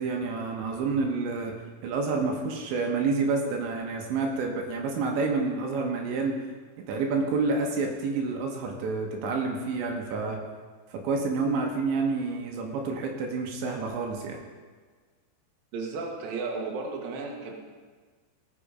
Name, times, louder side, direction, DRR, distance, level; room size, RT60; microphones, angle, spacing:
voice 1, 0.0-1.6 1.8-6.4 6.9-10.4 10.9-14.4, right 4 dB, 80° right, 1 dB, 3.4 m, -28 dB
voice 2, 15.7-17.5, right 4 dB, 60° right, 0 dB, 2.9 m, -34 dB
17.5 x 6.9 x 5.0 m, 1.5 s
omnidirectional pair, 5.2 m